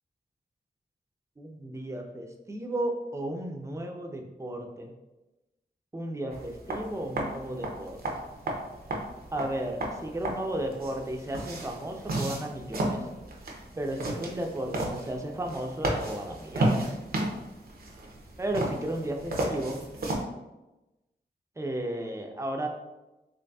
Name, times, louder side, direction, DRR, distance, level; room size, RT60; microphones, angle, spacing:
voice 1, 1.4-4.9 5.9-8.2 9.3-13.1 13.8-17.0 18.4-19.8 21.6-22.7, right 1 dB, 15° right, 2 dB, 0.5 m, -34 dB
sound 1, 6.3-20.2, right 1 dB, 60° right, 0.7 m, -33 dB
4.0 x 3.0 x 2.3 m, 1.0 s
wide cardioid pair, 70°, 18 cm